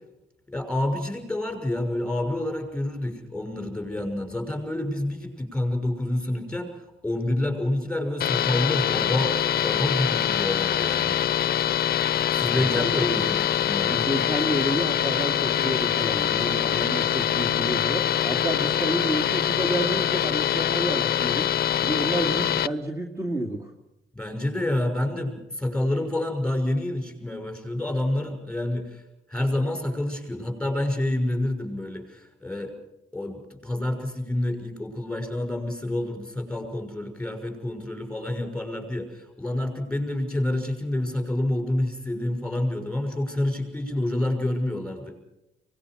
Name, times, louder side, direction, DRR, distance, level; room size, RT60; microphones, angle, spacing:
voice 1, 0.5-9.4 9.6-11.2 12.3-14.0 24.1-29.0 29.3-32.7 33.1-45.2, left 1 dB, 5° left, 5 dB, 6.4 m, -28 dB
sound 1, 8.2-22.7, left 10 dB, 50° left, 0.7 m, -24 dB
voice 2, 12.3-13.2 13.8-21.5 21.8-23.7, right 1 dB, 15° right, 0 dB, 2.5 m, -30 dB
24.5 x 19.5 x 6.3 m, 0.93 s
cardioid pair, 90°, 20 cm